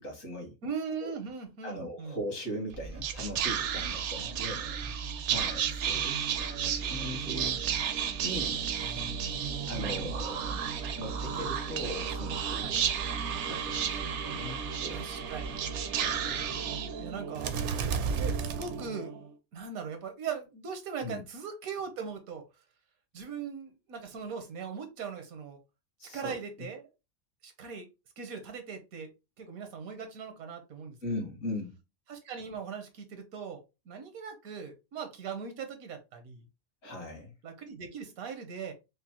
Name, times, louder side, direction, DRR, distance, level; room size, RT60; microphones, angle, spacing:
voice 1, 0.0-0.5 1.0-1.1 1.6-4.8 5.3-7.6 8.2-8.6 9.7-10.6 11.0-12.8 13.5-15.1 15.9-16.6 21.0-21.2 26.0-26.7 31.0-31.8 36.8-37.3, equal, 70° left, 2.0 m, -39 dB
voice 2, 0.6-2.2 4.2-4.4 4.8-4.9 8.8-10.1 12.6-12.8 14.9-15.6 17.0-17.5 18.1-19.1 19.5-22.4 23.1-25.6 26.0-26.9 27.4-27.8 28.2-29.1 29.4-31.0 32.1-36.4 37.4-38.7, right 6 dB, 85° right, 1.3 m, -40 dB
Whispering, 2.7-19.3, right 7 dB, 65° right, 0.8 m, -32 dB
5.1 x 2.0 x 2.9 m
omnidirectional pair, 1.4 m